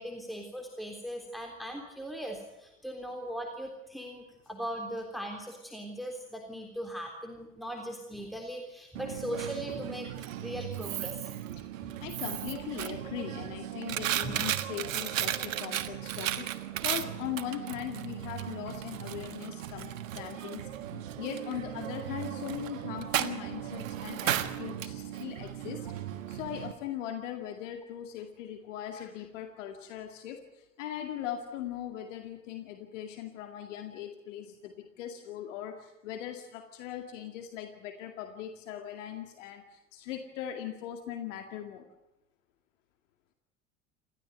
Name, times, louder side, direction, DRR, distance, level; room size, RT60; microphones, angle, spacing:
voice 1, 0.0-11.2 11.8-12.0 14.2-14.4 22.3-22.5, equal, ahead, 2 dB, 3.6 m, -39 dB
Coin (dropping), 8.9-26.7, right 12 dB, 70° right, 1.6 m, -35 dB
voice 2, 11.6-16.5 16.8-41.9, left 10 dB, 65° left, 5 dB, 2.2 m, -40 dB
28.0 x 14.5 x 9.2 m, 0.94 s
figure-of-eight pair, 70°, 41 cm